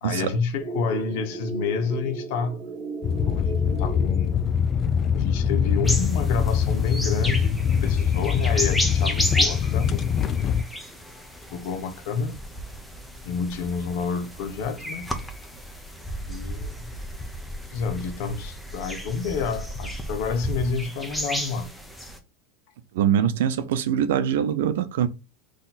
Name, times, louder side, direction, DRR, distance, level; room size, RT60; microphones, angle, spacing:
voice 1, 0.0-2.6 3.3-4.4 5.1-10.0 11.5-12.4 13.2-15.1 16.3-16.9 17.7-21.7, left 5 dB, 65° left, 0.9 m, -29 dB
sound 1, 0.6-4.9, right 4 dB, 15° right, 1.9 m, -36 dB
sound 2, 3.0-10.6, left 7 dB, 35° left, 0.4 m, -23 dB
sound 3, 5.8-22.2, equal, 5° left, 0.9 m, -33 dB
voice 2, 22.9-25.1, right 9 dB, 80° right, 0.6 m, -23 dB
3.9 x 3.1 x 4.1 m
supercardioid pair, 115°, 0 cm